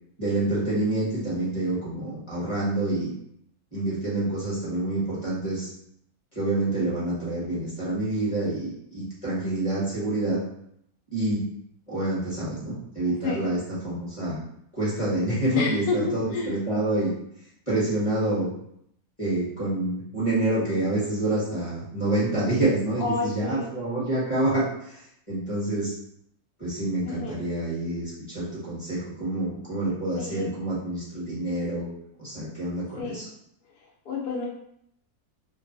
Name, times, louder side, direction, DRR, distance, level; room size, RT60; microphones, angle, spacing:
voice 1, 0.2-3.1 3.7-5.7 6.3-10.4 11.1-11.4 11.9-14.4 14.7-17.1 17.7-18.5 19.2-25.9 26.6-31.9 32.2-33.3, right 2 dB, 25° left, -10 dB, 1.2 m, -27 dB
voice 2, 13.0-13.5 15.5-16.0 16.3-16.5 23.0-23.7 27.1-27.3 30.2-30.6 33.0-33.2 34.1-34.5, left 5 dB, 90° left, -3 dB, 1.3 m, -29 dB
3.0 x 2.3 x 2.7 m, 0.74 s
omnidirectional pair, 1.6 m